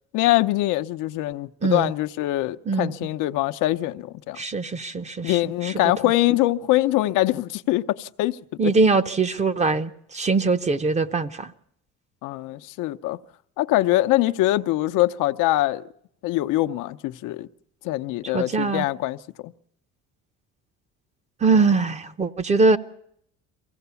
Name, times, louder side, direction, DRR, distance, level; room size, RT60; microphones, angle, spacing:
voice 1, 0.1-4.4 5.2-8.4 12.2-13.2 13.6-15.8 16.2-17.5 17.8-19.5, left 16 dB, 80° left, 0.8 m, -23 dB
voice 2, 1.6-1.9 2.7-2.9 4.4-5.7 8.6-11.5 18.3-18.8 21.4-22.8, right 3 dB, 20° right, 0.7 m, -22 dB
23.5 x 16.5 x 7.0 m
cardioid pair, 150°, 31 cm